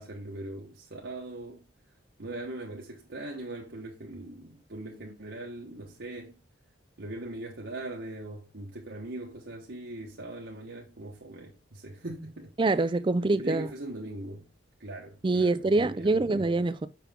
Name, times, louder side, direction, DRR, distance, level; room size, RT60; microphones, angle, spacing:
voice 1, 0.0-1.7 2.2-6.4 7.0-12.5 13.3-14.4 14.8-16.5, right 2 dB, 65° right, 1.1 m, -40 dB
voice 2, 12.6-13.7 15.2-16.9, right 2 dB, 25° right, 0.4 m, -25 dB
6.0 x 5.8 x 3.5 m
head